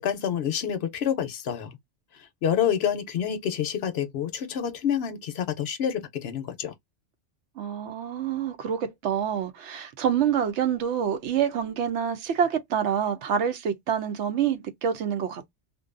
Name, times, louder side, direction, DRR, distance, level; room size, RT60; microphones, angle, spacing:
voice 1, 0.0-1.8 2.1-6.7, left 8 dB, 65° left, 0.8 m, -28 dB
voice 2, 7.6-15.5, right 8 dB, 75° right, 0.9 m, -27 dB
2.5 x 2.2 x 2.4 m
omnidirectional pair, 1.2 m